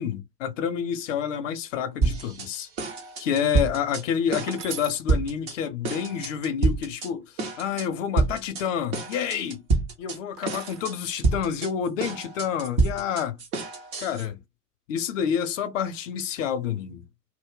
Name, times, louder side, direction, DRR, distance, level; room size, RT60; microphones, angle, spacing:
voice 1, 0.0-2.7 3.2-7.2 7.6-9.6 10.0-13.4 14.0-14.4 14.9-17.0, left 8 dB, 55° left, 0.7 m, -28 dB
sound 1, 2.0-2.5 2.8-4.0 4.3-4.8 5.1-5.5 5.8-7.1 7.4-7.9 8.2-8.6 8.9-10.2 10.5-10.9 11.2-14.3, right 3 dB, 15° right, 0.3 m, -27 dB
sound 2, 4.5-5.0 7.2-7.8 10.4-10.9 12.2-12.7, right 7 dB, 85° right, 0.8 m, -41 dB
2.2 x 2.2 x 3.5 m
figure-of-eight pair, 90°, 48 cm